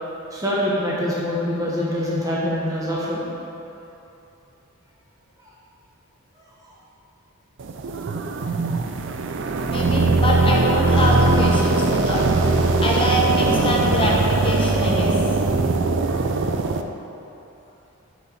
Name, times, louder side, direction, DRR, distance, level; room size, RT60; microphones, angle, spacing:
voice 1, 0.3-3.2, equal, 15° right, -7 dB, 1.2 m, -24 dB
sound 1, 7.6-16.8, right 3 dB, 55° right, 0.4 m, -20 dB
voice 2, 9.7-15.3, equal, 25° left, -3 dB, 1.0 m, -24 dB
6.7 x 5.0 x 5.7 m, 3.0 s
head